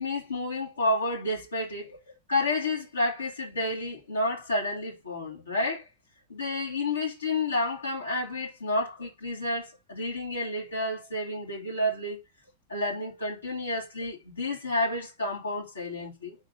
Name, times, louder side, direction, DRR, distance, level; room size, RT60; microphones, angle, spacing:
voice 1, 0.0-2.0 2.3-5.8 6.3-12.2 12.7-16.4, left 2 dB, 75° left, 3.0 m, -30 dB
5.1 x 4.4 x 5.6 m
figure-of-eight pair, 90°, 0 cm